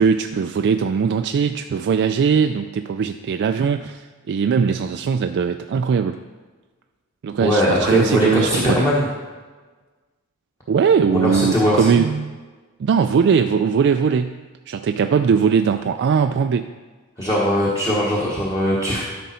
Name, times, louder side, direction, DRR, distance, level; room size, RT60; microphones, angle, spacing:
voice 1, 0.0-6.2 7.2-8.9 10.7-12.4 12.8-16.7, right 6 dB, 50° right, 7 dB, 0.3 m, -20 dB
voice 2, 7.4-9.1 11.1-11.9 17.2-19.0, equal, 20° left, -5 dB, 1.2 m, -20 dB
12.5 x 5.3 x 4.3 m, 1.3 s
head